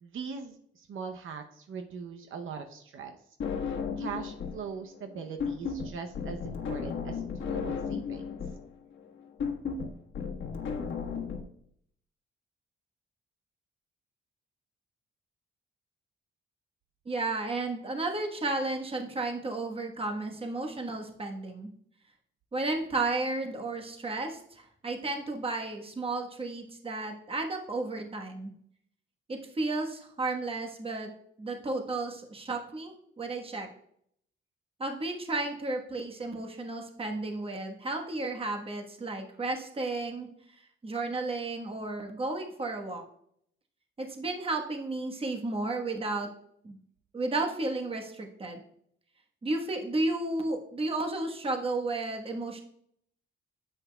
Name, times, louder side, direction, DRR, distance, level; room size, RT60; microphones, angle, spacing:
voice 1, 0.0-3.2 4.0-8.3, right 5 dB, 75° right, 5 dB, 0.7 m, -41 dB
sound 1, 3.4-4.7 4.9-11.4, left 6 dB, 70° left, 1.3 m, -34 dB
voice 2, 17.0-21.7 22.5-28.5 29.3-31.1 31.4-33.7 34.8-40.3 40.8-43.0 44.0-46.3 46.6-46.8 47.1-48.6 49.4-52.6, right 2 dB, 25° right, 2 dB, 1.2 m, -33 dB
9.6 x 8.0 x 2.3 m, 0.69 s
cardioid pair, 125°, 21 cm